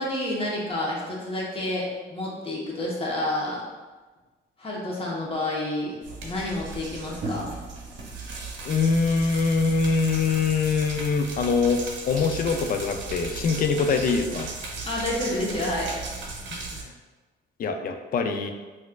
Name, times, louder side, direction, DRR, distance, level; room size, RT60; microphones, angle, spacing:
voice 1, 0.0-3.6 4.6-7.6 14.8-16.0, left 1 dB, 30° left, -4 dB, 1.0 m, -29 dB
sound 1, 6.0-16.8, right 3 dB, 70° right, 0.7 m, -36 dB
voice 2, 8.6-14.5 16.5-16.9 17.6-18.5, left 4 dB, 45° left, 6 dB, 0.4 m, -24 dB
4.1 x 2.5 x 2.3 m, 1.3 s
cardioid pair, 90°, 20 cm